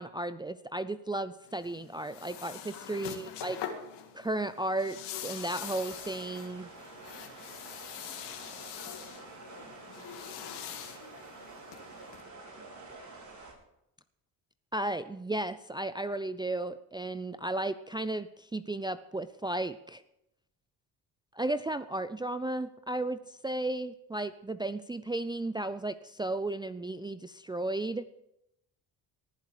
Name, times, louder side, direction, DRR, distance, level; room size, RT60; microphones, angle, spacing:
voice 1, 0.0-3.6 4.1-6.7 14.7-20.0 21.3-28.1, right 2 dB, 10° right, 11 dB, 0.5 m, -34 dB
sound 1, 1.4-12.2, left 9 dB, 85° left, 2.0 m, -44 dB
voice 2, 2.7-3.4 8.7-13.4, left 5 dB, 60° left, 1 dB, 3.7 m, -55 dB
sound 2, 5.5-13.5, right 3 dB, 45° right, 4.8 m, -49 dB
19.0 x 11.0 x 4.9 m, 0.85 s
supercardioid pair, 80°, 41 cm